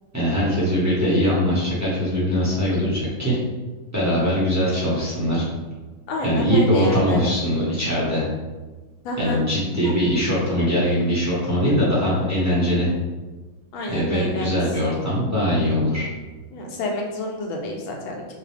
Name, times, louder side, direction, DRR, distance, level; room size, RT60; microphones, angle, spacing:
voice 1, 0.1-3.4 3.9-5.5 6.2-8.2 9.2-12.9 13.9-16.1, equal, 10° right, -9 dB, 0.8 m, -21 dB
voice 2, 6.1-7.2 9.0-9.4 9.8-10.0 13.7-14.5 16.5-18.2, left 1 dB, 75° left, 0 dB, 1.5 m, -29 dB
5.8 x 2.7 x 3.4 m, 1.3 s
omnidirectional pair, 2.3 m